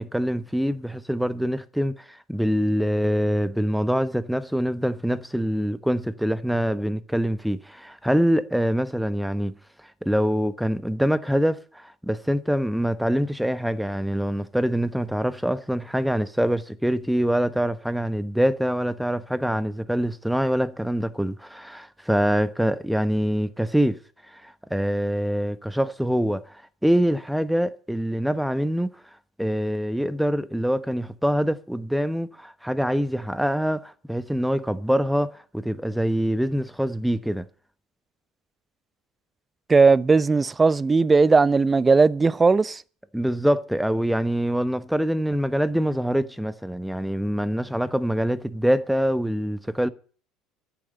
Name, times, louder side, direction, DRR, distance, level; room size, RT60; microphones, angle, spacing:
voice 1, 0.0-9.5 10.0-24.0 24.3-28.9 29.4-37.4 43.1-49.9, equal, ahead, 1.1 m, -24 dB
voice 2, 39.7-42.8, right 4 dB, 20° right, 0.6 m, -18 dB
10.5 x 8.7 x 9.6 m
hypercardioid pair, 75°, 0 cm